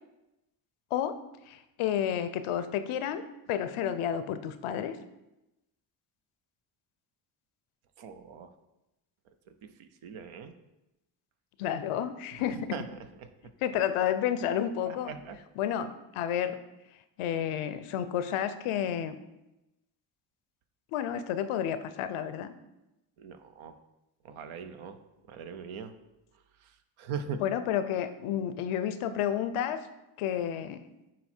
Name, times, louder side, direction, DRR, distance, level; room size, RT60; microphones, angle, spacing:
voice 1, 1.5-3.2 3.5-5.0 11.6-12.8 13.6-15.1 15.6-16.6 17.2-19.2 20.9-22.5 27.4-29.9 30.2-30.8, left 9 dB, 85° left, 11 dB, 0.6 m, -31 dB
voice 2, 8.0-8.5 9.8-10.5 12.7-12.8 14.9-15.4 23.2-23.8 24.2-25.0 25.3-25.9 27.0-27.4, right 6 dB, 75° right, 9 dB, 0.8 m, -40 dB
9.0 x 3.0 x 4.4 m, 0.95 s
supercardioid pair, 50°, 50 cm